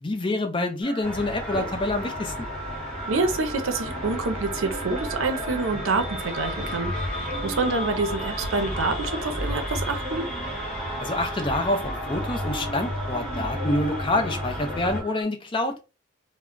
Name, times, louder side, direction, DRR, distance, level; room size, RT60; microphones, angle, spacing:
voice 1, 0.0-2.5 11.0-15.8, left 2 dB, 25° left, 0.4 m, -27 dB
sound 1, 0.8-15.2, equal, 20° right, 1.0 m, -37 dB
sound 2, 1.0-15.0, equal, 5° left, 1.0 m, -33 dB
voice 2, 3.1-7.1 7.4-10.3, right 3 dB, 85° right, 0.6 m, -27 dB
2.2 x 2.0 x 3.7 m
head